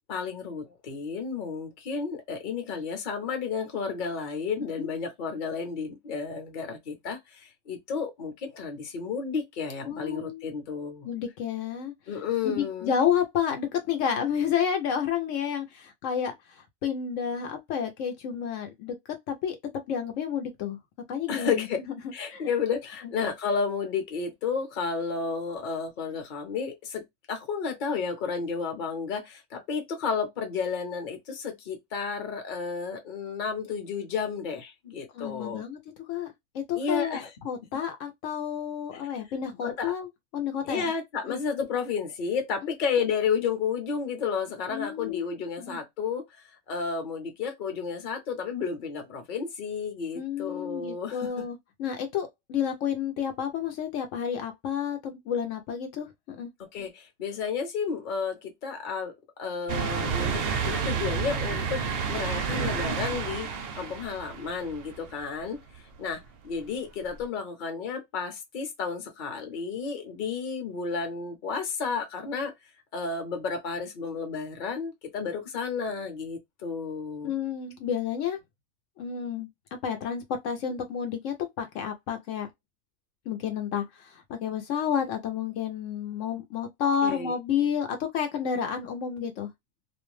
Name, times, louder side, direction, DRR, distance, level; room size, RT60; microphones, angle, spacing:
voice 1, 0.1-11.1 12.1-12.9 21.3-21.8 22.1-35.6 36.7-37.3 39.6-39.9 40.7-46.2 46.7-51.4 56.7-59.1 59.4-61.8 62.1-63.5 63.8-65.6 66.0-72.5 72.9-77.3 87.0-87.3, left 5 dB, 45° left, 0.9 m, -32 dB
voice 2, 9.9-10.4 11.0-11.9 12.4-19.0 19.3-19.6 19.9-20.8 21.1-22.5 35.1-35.8 36.1-40.9 41.2-41.4 42.6-42.7 44.7-45.3 45.6-45.8 50.1-56.5 77.2-78.4 79.0-79.5 79.8-82.5 83.3-89.5, left 8 dB, 75° left, 0.9 m, -30 dB
sound 1, 59.7-65.3 65.7-65.8 67.2-67.3, right 6 dB, 60° right, 0.6 m, -30 dB
2.4 x 2.1 x 3.0 m
omnidirectional pair, 1.4 m